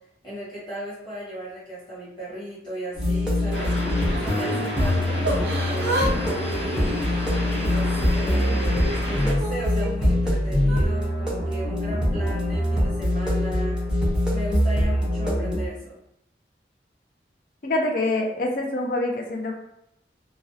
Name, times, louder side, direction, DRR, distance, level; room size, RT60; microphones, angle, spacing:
voice 1, 0.2-3.7 4.2-6.9 7.6-13.8 14.3-16.0, equal, 25° left, -8 dB, 1.1 m, -36 dB
sound 1, 2.9-15.7, left 1 dB, 5° right, 0.5 m, -24 dB
Yell / Crying sobbing, 3.4-4.6 5.2-6.1 6.4-7.8 8.3-9.9 10.6-10.8, right 1 dB, 75° right, 0.4 m, -32 dB
sound 2, 3.5-9.3, equal, 85° left, 0.7 m, -31 dB
voice 2, 17.6-19.6, left 2 dB, 50° left, 1 dB, 0.4 m, -25 dB
2.4 x 2.0 x 2.5 m, 0.75 s
head